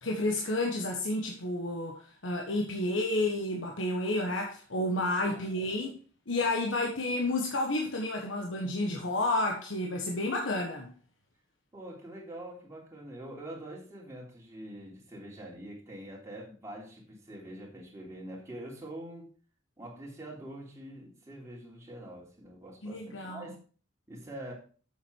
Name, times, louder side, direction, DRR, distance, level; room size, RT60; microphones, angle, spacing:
voice 1, 0.0-6.0 6.3-10.9 22.8-23.5, left 2 dB, 75° left, 1 dB, 1.4 m, -31 dB
voice 2, 5.3-5.9 11.7-19.3 19.8-23.6 24.1-24.5, right 1 dB, 15° right, -3 dB, 3.1 m, -45 dB
8.0 x 7.4 x 4.7 m, 0.40 s
head